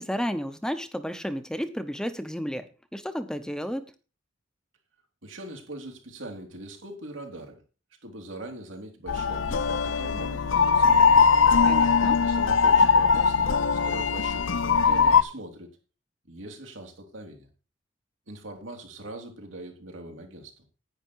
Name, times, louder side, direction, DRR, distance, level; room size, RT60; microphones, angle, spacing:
voice 1, 0.0-2.7 2.9-3.8 11.6-12.2, equal, 5° left, 10 dB, 0.8 m, -32 dB
voice 2, 5.2-7.6 8.0-11.1 12.2-15.7 16.3-17.5 18.3-20.6, right 1 dB, 85° right, 2 dB, 3.4 m, -42 dB
sound 1, 9.1-15.2, left 5 dB, 85° left, 0.7 m, -21 dB
10.5 x 9.5 x 4.6 m, 0.33 s
head